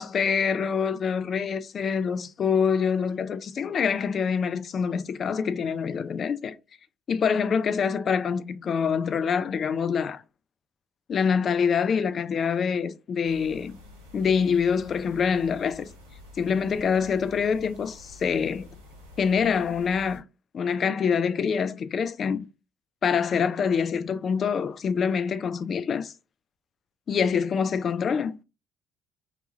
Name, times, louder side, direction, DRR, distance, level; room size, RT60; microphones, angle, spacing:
voice 1, 0.0-6.5 7.1-10.2 11.1-13.8 14.1-15.9 16.4-18.7 19.2-20.2 20.5-22.5 23.0-26.1 27.1-28.4, left 6 dB, 45° left, 0.3 m, -25 dB
sound 1, 13.2-20.2, left 2 dB, 80° right, 0.6 m, -48 dB
2.9 x 2.3 x 2.8 m
figure-of-eight pair, 50°, 0 cm